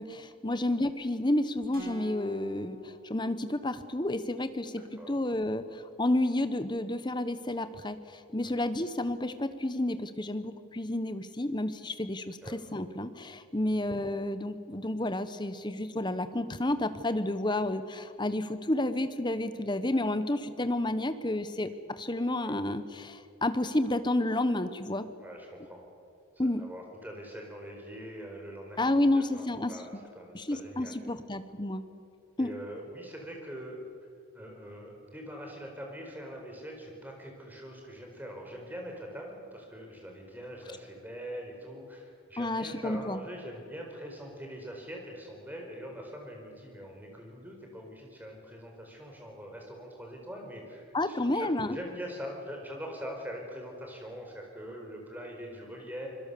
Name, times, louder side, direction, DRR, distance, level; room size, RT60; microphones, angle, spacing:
voice 1, 0.0-21.7 22.0-25.1 26.4-26.6 28.8-29.7 30.3-31.8 32.4-32.5 42.4-43.2 50.9-51.8, left 1 dB, 20° left, 11 dB, 1.1 m, -30 dB
sound 1, 1.7-3.8, equal, 45° right, 7.9 m, -47 dB
voice 2, 25.2-25.8 26.3-31.0 32.4-33.8 34.3-56.1, equal, 10° right, 1 dB, 4.4 m, -43 dB
25.5 x 22.0 x 6.9 m, 2.3 s
head